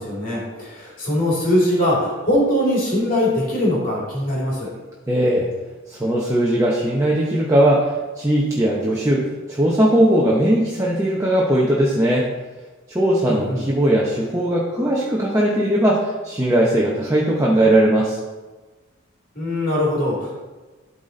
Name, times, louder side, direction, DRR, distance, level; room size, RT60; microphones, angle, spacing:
voice 1, 0.0-4.7 13.2-13.6 19.3-20.3, left 1 dB, 40° left, -5 dB, 2.6 m, -21 dB
voice 2, 5.1-5.5 5.9-7.9 8.2-12.3 12.9-18.2, right 1 dB, 15° right, -4 dB, 0.8 m, -19 dB
12.0 x 4.2 x 3.9 m, 1.2 s
head